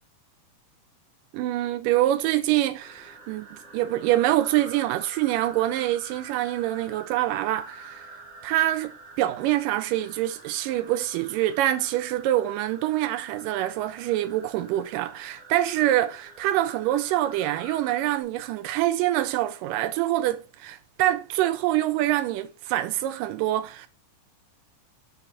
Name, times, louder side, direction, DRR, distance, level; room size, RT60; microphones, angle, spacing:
voice 1, 1.3-8.1 8.4-8.9 9.2-23.9, right 14 dB, 90° right, 2.2 m, -25 dB
sound 1, 2.8-18.2, right 3 dB, 45° right, 0.7 m, -47 dB
6.6 x 4.3 x 5.7 m
omnidirectional pair, 3.8 m